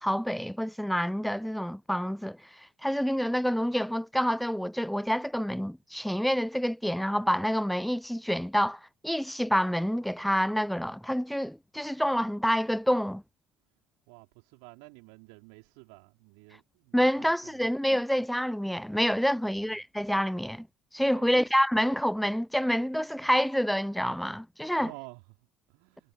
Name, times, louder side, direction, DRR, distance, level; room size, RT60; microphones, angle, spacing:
voice 1, 0.0-13.2 16.9-20.7 20.9-24.9, equal, ahead, 0.4 m, -28 dB
voice 2, 14.1-17.7 19.3-19.7 21.1-21.4 24.8-26.1, right 40 dB or more, 65° right, 3.8 m, -51 dB
figure-of-eight pair, 55°, 4 cm